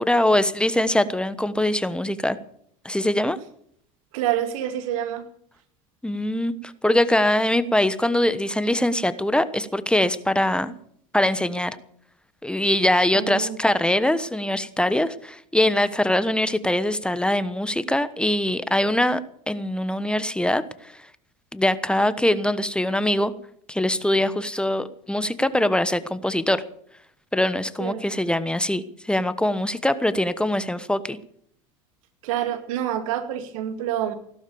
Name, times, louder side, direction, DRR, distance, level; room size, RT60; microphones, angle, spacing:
voice 1, 0.0-2.4 2.8-3.4 6.0-10.7 11.1-11.8 12.4-19.2 19.5-20.9 21.5-23.3 23.7-26.6 27.3-31.2, left 1 dB, 5° left, 14 dB, 1.1 m, -22 dB
voice 2, 4.1-5.2 13.1-13.6 27.8-28.0 32.2-34.1, right 11 dB, 75° right, 8 dB, 2.5 m, -27 dB
17.0 x 12.0 x 7.0 m, 0.65 s
hypercardioid pair, 80°, 18 cm